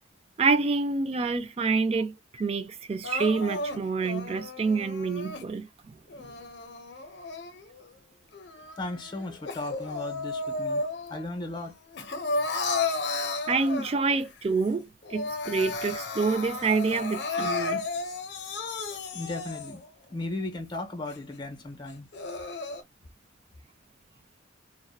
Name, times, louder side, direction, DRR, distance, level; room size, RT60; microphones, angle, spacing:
voice 1, 0.4-2.1 2.4-5.9 13.5-17.8, right 4 dB, 30° right, 0.3 m, -27 dB
Crying sobbing, 3.0-5.5 6.1-7.9 8.3-11.2 11.6-14.2 14.7-14.8 15.0-19.9 20.4-20.5 21.1-21.2 21.9-22.8, left 3 dB, 60° left, 0.6 m, -33 dB
voice 2, 8.7-10.8 11.1-11.7 19.1-19.8 20.1-22.1, left 2 dB, 25° left, 0.7 m, -36 dB
2.6 x 2.1 x 2.2 m
head